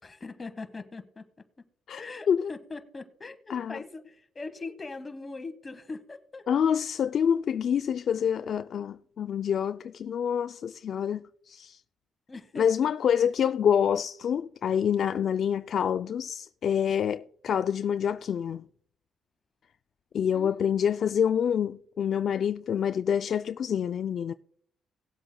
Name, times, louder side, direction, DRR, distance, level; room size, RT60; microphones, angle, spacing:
voice 1, 0.0-1.7 2.0-6.5 12.3-12.9 20.3-20.8, left 3 dB, 30° left, 1.2 m, -41 dB
voice 2, 6.5-11.8 12.6-18.6 20.1-24.3, left 8 dB, 60° left, 0.3 m, -27 dB
19.0 x 7.8 x 2.2 m
cardioid pair, 90°, 0 cm